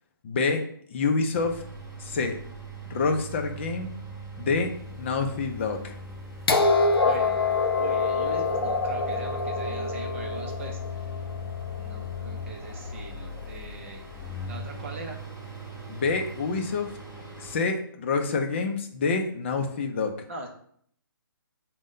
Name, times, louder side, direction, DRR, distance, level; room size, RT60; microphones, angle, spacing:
voice 1, 0.2-0.6 0.9-1.6 2.0-2.4 2.9-3.9 4.4-5.9 15.9-16.9 17.4-20.1, left 4 dB, 30° left, 5 dB, 0.5 m, -27 dB
sound 1, 1.3-17.6, left 2 dB, ahead, 1.0 m, -39 dB
sound 2, 6.5-12.3 13.4-13.5, left 3 dB, 85° left, 0.6 m, -26 dB
voice 2, 7.0-7.4 7.8-11.1 11.8-14.0 14.5-15.2 20.3-20.5, right 3 dB, 35° right, 2 dB, 0.5 m, -41 dB
5.0 x 2.2 x 3.7 m, 0.63 s
hypercardioid pair, 155°, 12 cm